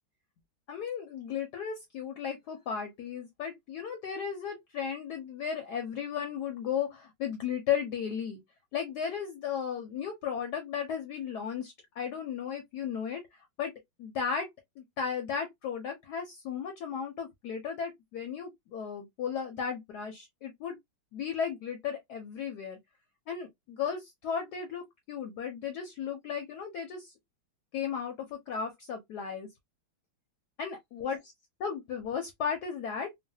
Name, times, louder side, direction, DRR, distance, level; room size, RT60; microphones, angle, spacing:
voice 1, 0.7-8.4 8.7-13.2 13.6-13.7 14.0-14.5 14.8-20.8 21.1-22.8 23.3-27.1 27.7-29.5 30.6-31.2 31.6-33.1, left 7 dB, 65° left, 1.1 m, -35 dB
3.1 x 2.3 x 2.6 m
omnidirectional pair, 2.2 m